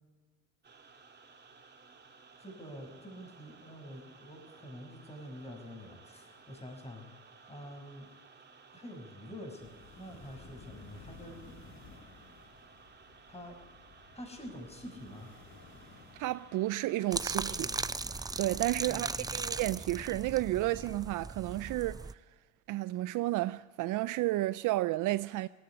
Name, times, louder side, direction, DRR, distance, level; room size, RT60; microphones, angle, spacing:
sound 1, 0.6-19.6, right 4 dB, 35° right, 2.5 m, -57 dB
voice 1, 2.4-7.0 7.5-8.1 8.7-11.5 13.3-13.6 14.1-15.3 17.5-17.8 18.8-19.4, equal, 20° left, 5.8 m, -47 dB
sound 2, 9.6-16.9, left 4 dB, 65° left, 2.4 m, -55 dB
voice 2, 16.2-17.7 18.4-22.2 22.7-25.5, right 17 dB, 85° right, 0.5 m, -32 dB
sound 3, 17.1-22.1, right 3 dB, 15° right, 0.5 m, -37 dB
18.0 x 15.5 x 9.8 m
cardioid pair, 90°, 30 cm